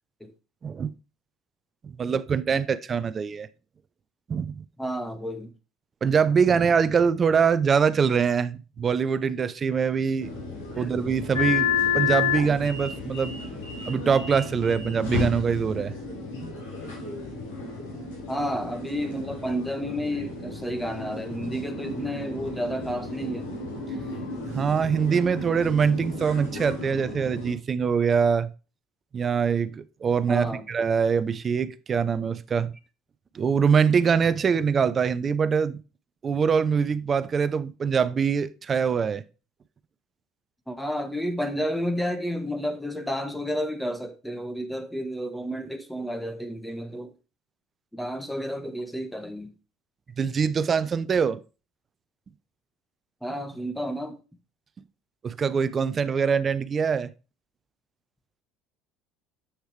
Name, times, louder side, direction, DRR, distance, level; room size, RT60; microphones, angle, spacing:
voice 1, 1.8-3.5 4.3-4.6 6.0-10.3 10.8-11.7 11.9-13.4 13.9-15.9 24.5-28.5 29.1-32.7 33.3-35.8 36.2-39.2 50.2-51.4 55.2-57.1, right 6 dB, 35° right, 0.7 m, -23 dB
voice 2, 4.8-5.5 10.8-10.9 18.3-23.5 30.3-30.7 40.7-47.1 47.9-49.5 53.2-54.2, equal, 5° left, 1.3 m, -31 dB
sound 1, 10.2-27.5, left 5 dB, 85° left, 4.2 m, -32 dB
8.2 x 6.4 x 3.3 m
hypercardioid pair, 75°, 0 cm